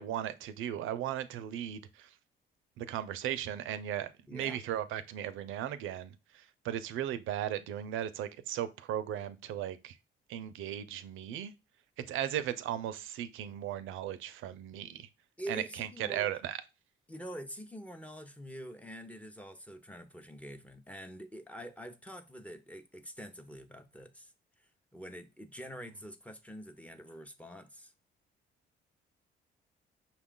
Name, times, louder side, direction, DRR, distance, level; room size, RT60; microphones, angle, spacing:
voice 1, 0.0-2.2 2.8-10.0 10.3-11.5 12.0-15.1 15.5-16.6, right 11 dB, 85° right, 0.5 m, -37 dB
voice 2, 4.3-4.6 15.4-16.3 17.1-27.9, equal, 5° left, 0.6 m, -46 dB
5.7 x 2.3 x 3.7 m
cardioid pair, 90°, 20 cm